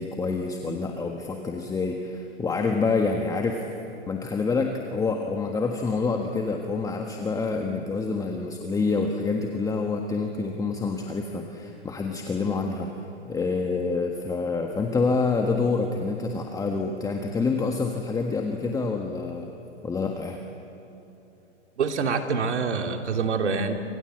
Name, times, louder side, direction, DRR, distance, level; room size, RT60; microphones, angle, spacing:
voice 1, 0.0-3.6 4.1-12.9 13.2-19.5 19.8-20.4, left 4 dB, 10° left, 3 dB, 1.5 m, -27 dB
voice 2, 21.8-23.7, right 5 dB, 70° right, 5 dB, 3.1 m, -26 dB
28.5 x 26.5 x 7.9 m, 2.9 s
hypercardioid pair, 130°, 35 cm